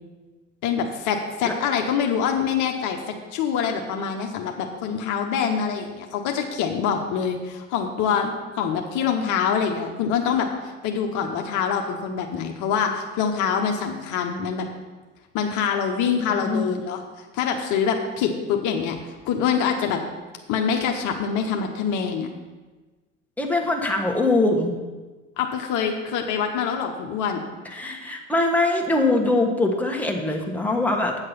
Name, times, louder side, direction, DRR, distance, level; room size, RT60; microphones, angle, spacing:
voice 1, 0.6-10.5 10.8-14.7 15.3-17.0 17.3-20.0 20.5-22.3 25.4-27.4, left 7 dB, 55° left, 3 dB, 1.0 m, -25 dB
voice 2, 16.4-16.7 23.4-24.7 27.7-31.1, left 2 dB, 5° left, 1 dB, 1.4 m, -22 dB
8.8 x 6.5 x 5.7 m, 1.3 s
hypercardioid pair, 70°, 37 cm